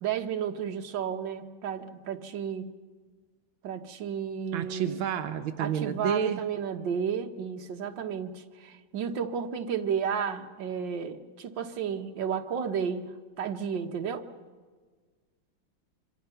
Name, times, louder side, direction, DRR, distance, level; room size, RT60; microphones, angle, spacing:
voice 1, 0.0-2.7 3.6-5.0 5.6-13.1 13.4-14.3, right 7 dB, 70° right, 5 dB, 1.9 m, -32 dB
voice 2, 4.5-6.4, right 8 dB, 85° right, 6 dB, 1.7 m, -30 dB
25.5 x 25.0 x 5.7 m, 1.5 s
omnidirectional pair, 2.1 m